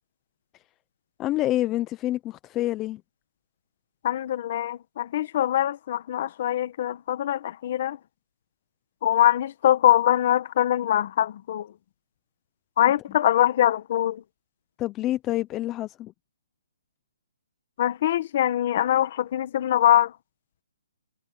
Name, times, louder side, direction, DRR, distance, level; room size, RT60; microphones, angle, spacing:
voice 1, 1.2-3.0 14.8-16.1, left 15 dB, 10° left, 0.4 m, -27 dB
voice 2, 4.0-8.0 9.0-11.7 12.8-14.2 17.8-20.1, left 12 dB, 30° left, 1.0 m, -23 dB
hypercardioid pair, 175°, 0 cm